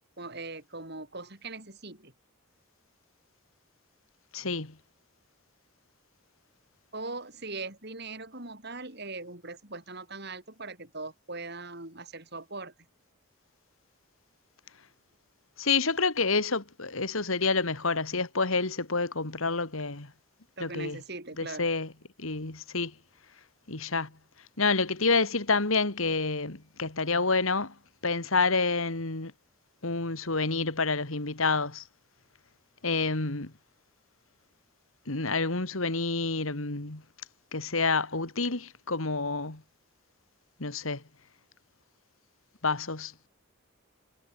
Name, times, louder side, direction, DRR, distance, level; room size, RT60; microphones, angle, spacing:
voice 1, 0.2-2.1 6.9-12.7 20.6-21.7, right 3 dB, 50° right, 5.4 m, -40 dB
voice 2, 4.3-4.7 15.6-20.1 20.6-21.0 21.4-21.9 22.2-22.9 23.7-24.1 24.6-27.7 28.0-29.3 29.8-31.8 32.8-33.5 35.1-37.0 37.5-39.6 40.6-41.0 42.6-43.1, left 4 dB, 75° left, 2.5 m, -28 dB
head